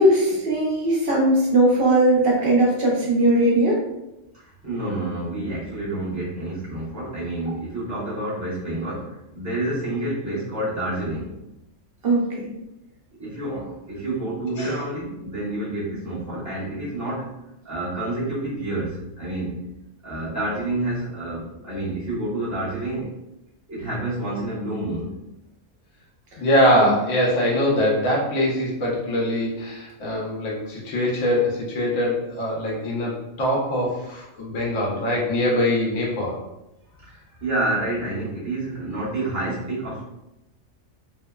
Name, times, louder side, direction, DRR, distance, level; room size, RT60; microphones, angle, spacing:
voice 1, 0.0-3.8 12.0-12.5 26.8-26.9, right 1 dB, 55° right, -3 dB, 0.8 m, -19 dB
voice 2, 4.3-11.5 13.2-17.3 17.6-19.7 20.0-23.1 23.7-25.2 36.9-40.0, right 1 dB, 15° right, -9 dB, 0.8 m, -29 dB
voice 3, 26.3-33.1 33.4-36.4, equal, 85° left, -4 dB, 1.1 m, -22 dB
2.8 x 2.0 x 2.2 m, 0.91 s
omnidirectional pair, 1.3 m